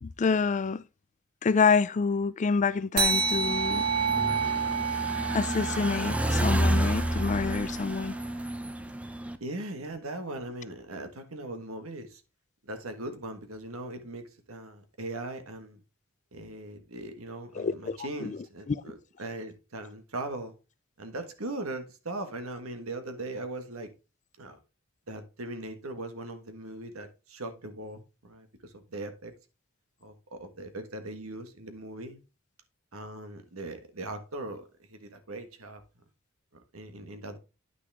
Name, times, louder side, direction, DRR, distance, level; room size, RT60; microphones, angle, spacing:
voice 1, 0.0-0.8 1.4-3.9 5.3-8.2 17.6-18.4 18.7-18.8, left 5 dB, 35° left, 0.4 m, -27 dB
sound 1, 3.0-7.9, right 6 dB, 55° right, 1.6 m, -30 dB
sound 2, 3.1-9.4, right 1 dB, 5° right, 0.6 m, -30 dB
voice 2, 9.4-12.2 12.6-15.8 16.3-20.5 21.0-23.9 24.4-24.6 25.1-29.3 30.0-32.2 32.9-35.8 36.7-37.4, right 2 dB, 85° right, 1.5 m, -39 dB
9.4 x 6.1 x 3.5 m
head